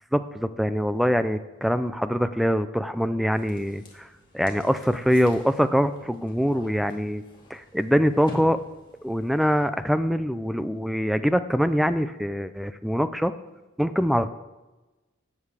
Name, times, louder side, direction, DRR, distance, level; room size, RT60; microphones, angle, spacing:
voice 1, 0.1-4.1 4.3-7.2 7.5-8.6 9.0-13.3 13.8-14.3, equal, ahead, 11 dB, 0.4 m, -24 dB
sound 1, 3.3-9.9, left 1 dB, 25° left, 2.1 m, -47 dB
14.5 x 8.8 x 4.8 m, 1.1 s
head